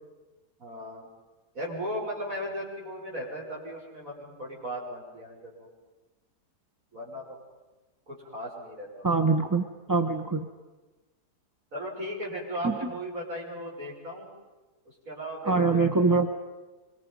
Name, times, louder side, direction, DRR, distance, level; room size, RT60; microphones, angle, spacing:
voice 1, 0.6-1.1 1.5-5.7 6.9-7.4 8.1-9.1 11.7-14.3 15.1-15.8, equal, 55° right, -4 dB, 6.5 m, -36 dB
voice 2, 9.0-10.4 12.6-12.7 15.4-16.4, right 4 dB, 15° right, 4 dB, 0.7 m, -24 dB
26.0 x 24.5 x 5.5 m, 1.2 s
omnidirectional pair, 1.7 m